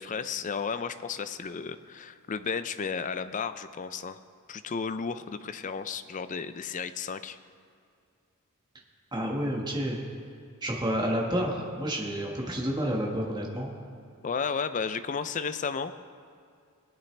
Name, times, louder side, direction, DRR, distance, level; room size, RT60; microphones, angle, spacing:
voice 1, 0.0-4.2 4.5-7.4 14.2-15.9, left 5 dB, 35° left, 12 dB, 0.4 m, -33 dB
voice 2, 9.1-10.0 10.6-13.7, equal, 20° right, -2 dB, 1.5 m, -29 dB
21.0 x 8.5 x 3.3 m, 2.3 s
head